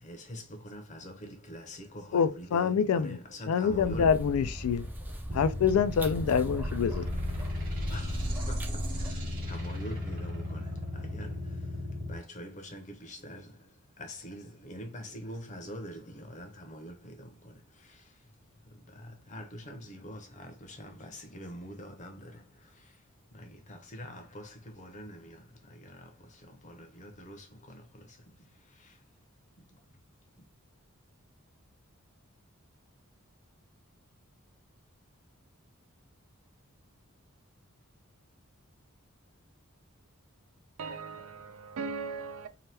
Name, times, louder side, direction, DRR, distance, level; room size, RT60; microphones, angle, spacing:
voice 1, 0.0-4.1 6.3-6.4 7.9-11.6 12.1-13.7 14.0-18.0 18.9-22.5 22.8-22.9 23.3-28.2 28.8-28.9, equal, 35° left, 0.7 m, -45 dB
voice 2, 2.1-3.2 3.5-4.9 5.3-7.1, left 6 dB, 85° left, 0.3 m, -26 dB
sound 1, 3.7-9.1, equal, 10° right, 0.4 m, -37 dB
sound 2, 5.3-12.1, left 1 dB, 40° right, 1.1 m, -36 dB
voice 3, 40.8-42.5, right 4 dB, 75° right, 0.4 m, -38 dB
2.8 x 2.2 x 3.2 m
head